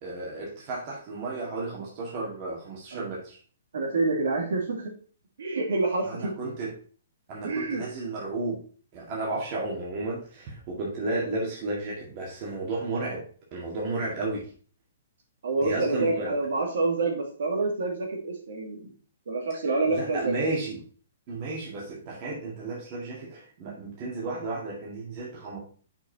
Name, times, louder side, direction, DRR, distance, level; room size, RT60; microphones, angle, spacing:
voice 1, 0.0-3.4 6.0-6.7 7.3-8.6 8.9-13.2 13.5-14.5 15.6-16.4 19.9-20.8 21.3-25.6, right 2 dB, 30° right, -3 dB, 2.0 m, -33 dB
voice 2, 3.7-4.9 5.4-6.3 7.4-7.8 15.4-18.9 19.3-20.3, right 3 dB, 70° right, 0 dB, 2.5 m, -27 dB
6.2 x 4.9 x 4.5 m, 0.42 s
hypercardioid pair, 170°, 0 cm